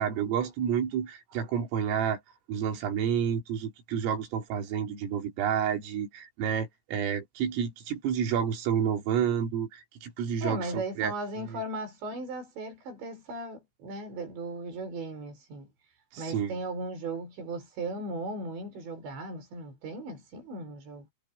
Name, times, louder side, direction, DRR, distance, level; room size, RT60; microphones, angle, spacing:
voice 1, 0.0-2.2 2.5-11.1 11.4-11.6 16.1-16.5, right 8 dB, 80° right, 5.8 m, -30 dB
voice 2, 10.4-21.1, right 2 dB, 60° right, 8.2 m, -37 dB
omnidirectional pair, 5.8 m